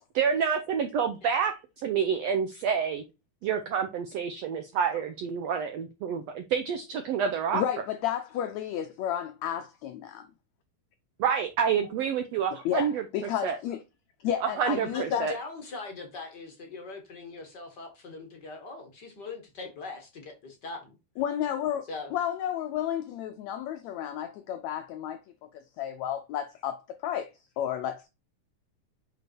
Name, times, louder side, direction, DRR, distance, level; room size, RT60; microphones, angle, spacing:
voice 1, 0.1-1.5 1.8-3.0 3.4-7.6 11.2-13.0 13.4-13.6 14.4-15.3, right 7 dB, 90° right, 1.4 m, -28 dB
voice 2, 7.5-10.3 12.5-13.8 14.2-15.3 21.2-25.2 25.5-28.1, left 10 dB, 90° left, 1.5 m, -32 dB
voice 3, 14.9-21.0 21.9-22.1, left 3 dB, 45° left, 1.5 m, -40 dB
6.2 x 5.2 x 4.5 m
omnidirectional pair, 3.9 m